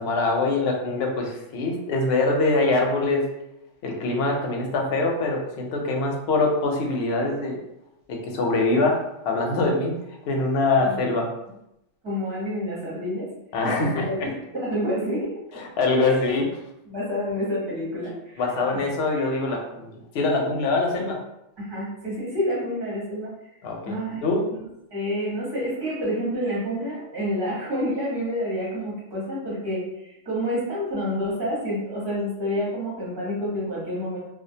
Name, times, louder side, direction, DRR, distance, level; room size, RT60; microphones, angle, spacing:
voice 1, 0.0-3.2 3.8-7.6 8.1-9.0 9.3-10.0 10.3-11.3 13.5-14.3 15.5-16.5 18.4-21.2 23.6-24.4, left 3 dB, 65° left, 1 dB, 0.7 m, -24 dB
voice 2, 12.0-13.3 13.6-15.3 16.0-16.1 16.9-18.4 18.7-18.8 21.6-23.5 23.8-24.2 24.9-34.2, equal, 25° right, -6 dB, 0.7 m, -28 dB
2.3 x 2.1 x 2.6 m, 0.85 s
omnidirectional pair, 1.3 m